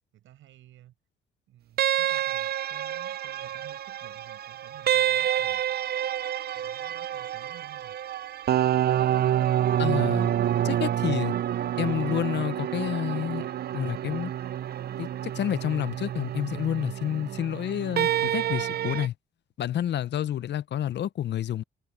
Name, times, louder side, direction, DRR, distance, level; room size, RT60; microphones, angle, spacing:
voice 1, 0.1-0.9 1.5-5.6 6.5-8.0, right 13 dB, 80° right, 7.6 m, -53 dB
sound 1, 1.8-19.1, right 11 dB, 50° right, 0.5 m, -28 dB
voice 2, 9.8-10.3 10.6-11.3 11.8-13.5 13.7-14.3 15.0-19.1 19.6-21.6, left 11 dB, 60° left, 0.8 m, -29 dB
open air
cardioid pair, 90°, 20 cm